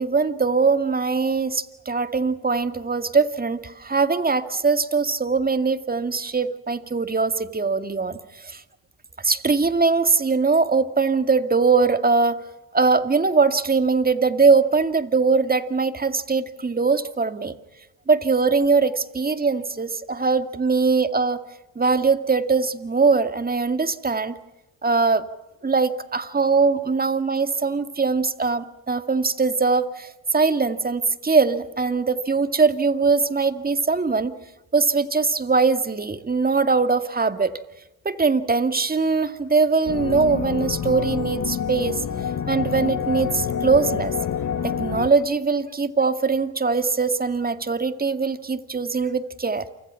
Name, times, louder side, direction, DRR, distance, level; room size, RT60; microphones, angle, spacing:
voice 1, 0.0-8.6 9.2-12.4 12.7-17.5 18.1-21.4 21.8-24.3 24.8-25.2 25.6-34.3 34.7-37.6 38.0-42.0 42.5-44.1 44.6-49.7, right 4 dB, 20° right, 10 dB, 2.1 m, -21 dB
sound 1, 39.9-45.1, left 8 dB, 45° left, 1.7 m, -27 dB
28.5 x 25.5 x 5.8 m, 0.96 s
supercardioid pair, 70°, 41 cm